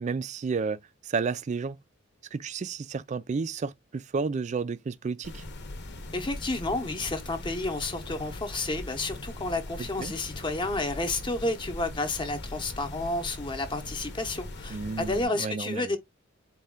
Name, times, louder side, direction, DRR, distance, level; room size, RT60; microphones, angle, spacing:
voice 1, 0.0-1.8 2.3-5.4 9.8-10.1 14.7-15.9, right 4 dB, 35° right, 0.3 m, -32 dB
sound 1, 5.2-15.2, left 2 dB, 60° left, 0.8 m, -40 dB
voice 2, 6.1-16.0, left 2 dB, 25° left, 0.7 m, -31 dB
4.2 x 2.3 x 3.6 m
head